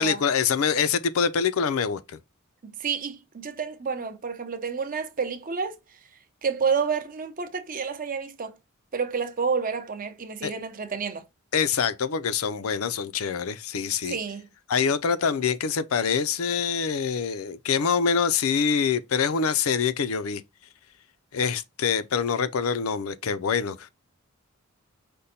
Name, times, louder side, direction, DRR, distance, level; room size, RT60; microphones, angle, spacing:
voice 1, 0.0-2.2 10.4-10.5 11.5-14.2 14.7-20.4 21.3-23.9, left 6 dB, 75° left, 0.5 m, -25 dB
voice 2, 2.6-5.8 6.4-8.5 8.9-11.2 14.1-14.5, right 5 dB, 40° right, 0.6 m, -29 dB
5.2 x 2.1 x 4.1 m
head